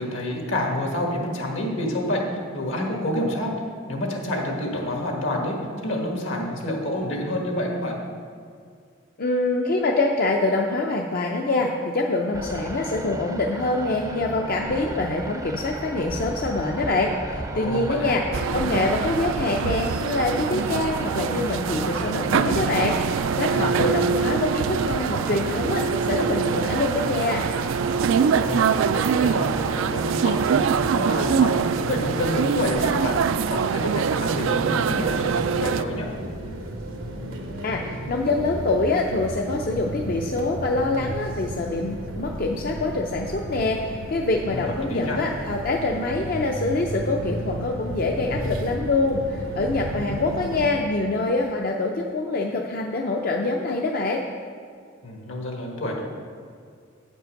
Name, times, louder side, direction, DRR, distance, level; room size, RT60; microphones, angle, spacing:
voice 1, 0.0-2.2 2.5-3.5 3.9-5.6 5.8-8.0 17.5-18.1 23.5-23.9 28.3-30.6 30.9-33.2 33.5-36.1 44.4-45.2 49.9-50.2 55.0-56.0, left 1 dB, 75° left, 0 dB, 1.6 m, -28 dB
voice 2, 9.2-27.5 37.6-54.2, left 2 dB, 50° left, 1 dB, 0.5 m, -25 dB
sound 1, 12.3-31.6, right 1 dB, 15° right, 0.5 m, -35 dB
sound 2, 18.3-35.8, right 6 dB, 70° right, 0.3 m, -24 dB
sound 3, 34.8-50.7, right 1 dB, 85° right, 1.1 m, -34 dB
9.1 x 5.3 x 6.4 m, 2.1 s
head